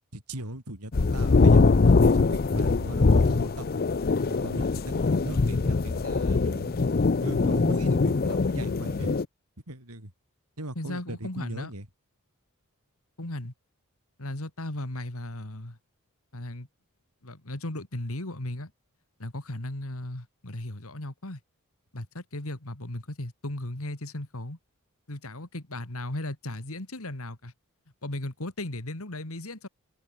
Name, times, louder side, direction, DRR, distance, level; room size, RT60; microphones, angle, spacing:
voice 1, 0.1-3.7 4.3-6.8 7.2-9.2 9.7-10.1 10.6-11.9, right 1 dB, 90° right, 5.4 m, -39 dB
sound 1, 0.9-9.2, left 3 dB, 45° left, 0.5 m, -22 dB
voice 2, 10.8-11.7 13.2-13.5 14.2-15.8 16.3-16.7 17.2-18.7 19.2-21.4 21.9-24.6 25.1-27.5 28.0-29.7, left 1 dB, 70° left, 2.7 m, -36 dB
head